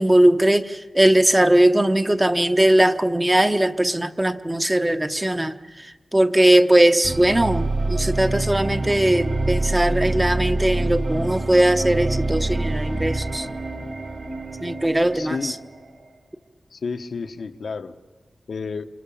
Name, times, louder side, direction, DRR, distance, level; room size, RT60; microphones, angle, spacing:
voice 1, 0.0-13.5 14.6-15.5, right 1 dB, 15° right, 9 dB, 0.9 m, -19 dB
sound 1, 7.0-16.1, right 2 dB, 60° right, 5.1 m, -26 dB
voice 2, 15.1-15.5 16.7-18.0 18.5-18.9, left 4 dB, 75° left, 7 dB, 1.1 m, -31 dB
29.0 x 27.0 x 7.2 m, 1.3 s
wide cardioid pair, 125°, 0 cm